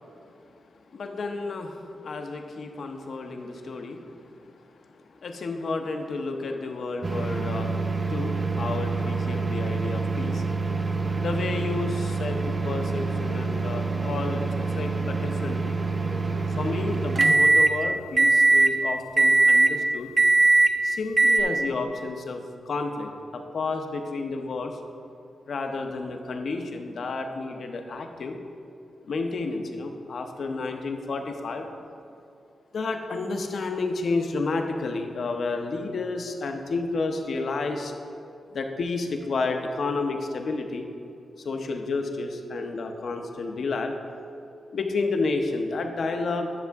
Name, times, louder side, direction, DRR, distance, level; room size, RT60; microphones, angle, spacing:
voice 1, 0.9-4.7 5.2-10.4 11.2-15.7 16.6-20.1 20.8-24.8 25.5-28.4 29.0-31.7 32.7-37.9 38.5-40.9 41.4-44.0 44.7-46.6, left 3 dB, 65° left, 4 dB, 0.8 m, -31 dB
sound 1, 7.0-17.7 18.2-18.7 19.2-19.7 20.2-20.7 21.2-21.4, right 3 dB, 30° right, 0.5 m, -23 dB
11.0 x 6.8 x 3.5 m, 2.6 s
wide cardioid pair, 110°, 0 cm